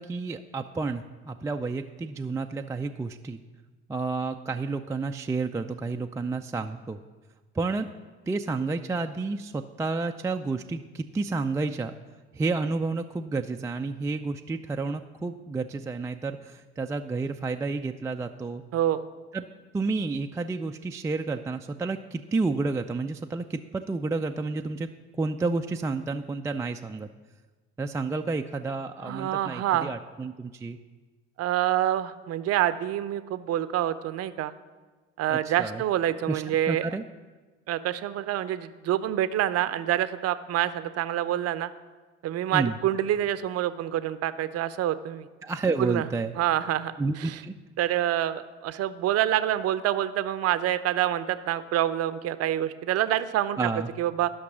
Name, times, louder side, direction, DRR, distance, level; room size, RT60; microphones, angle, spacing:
voice 1, 0.0-3.4 3.9-7.0 7.5-7.9 8.3-11.9 12.4-18.6 19.3-19.5 19.7-24.9 25.2-27.1 27.8-30.8 35.3-35.8 36.3-37.0 42.5-42.7 45.4-46.3 47.0-47.5 53.6-53.9, right 3 dB, 10° right, 5 dB, 0.3 m, -30 dB
voice 2, 18.7-19.1 29.0-29.9 31.4-34.5 35.2-36.8 37.7-41.7 42.2-45.3 45.8-46.1 46.4-46.9 47.2-47.4 47.8-53.7 54.0-54.3, right 12 dB, 45° right, 14 dB, 0.6 m, -27 dB
11.0 x 6.0 x 6.1 m, 1.3 s
hypercardioid pair, 55°, 34 cm